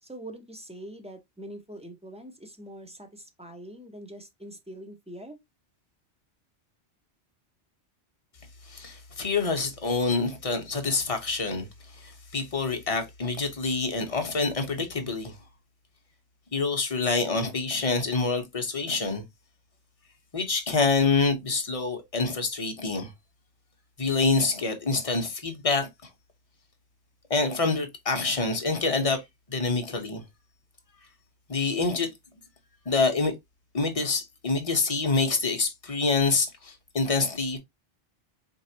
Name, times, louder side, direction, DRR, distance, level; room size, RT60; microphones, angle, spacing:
voice 1, 0.0-5.4, right 1 dB, 10° right, 0.5 m, -43 dB
voice 2, 8.7-11.7 11.9-15.3 16.5-19.2 20.3-23.1 24.0-25.9 27.3-29.2 29.5-30.2 31.5-32.1 32.9-33.3 33.7-37.6, left 3 dB, 35° left, 0.9 m, -26 dB
4.5 x 3.0 x 2.7 m
omnidirectional pair, 1.2 m